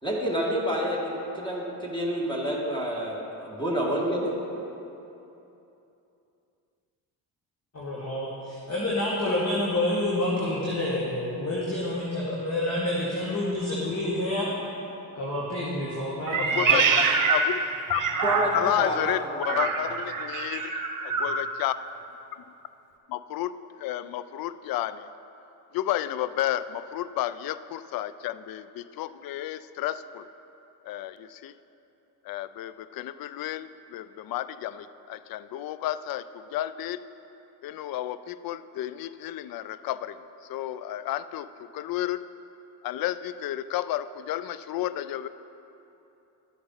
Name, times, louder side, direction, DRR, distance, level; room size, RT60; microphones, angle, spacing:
voice 1, 0.0-4.3 18.2-19.6, equal, 10° left, -3 dB, 2.1 m, -29 dB
voice 2, 7.7-14.5 15.1-16.9, left 1 dB, 35° left, -6 dB, 2.1 m, -28 dB
Meow, 16.3-18.8 19.4-21.4, right 5 dB, 45° right, 1.1 m, -25 dB
voice 3, 16.4-17.6 17.9-18.0 18.5-20.8 21.0-21.7 23.1-25.1 25.7-30.2 30.8-31.5 32.3-37.0 37.6-40.2 40.5-41.5 41.7-42.2 42.8-45.3, left 13 dB, 50° left, 15 dB, 0.5 m, -31 dB
12.0 x 7.6 x 4.1 m, 2.9 s
supercardioid pair, 60°, 46 cm